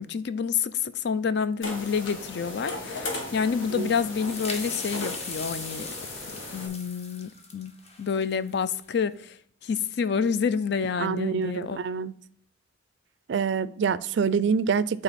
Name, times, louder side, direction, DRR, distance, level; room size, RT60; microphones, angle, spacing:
voice 1, 0.0-5.9 6.5-7.7 8.0-9.4 9.6-11.8, left 6 dB, 60° left, 0.4 m, -28 dB
sound 1, 1.6-6.7, left 2 dB, 90° left, 1.6 m, -37 dB
sound 2, 3.5-9.0, left 3 dB, 35° left, 1.0 m, -39 dB
voice 2, 11.0-12.1 13.3-15.0, right 6 dB, 65° right, 0.3 m, -26 dB
8.9 x 3.8 x 4.1 m
head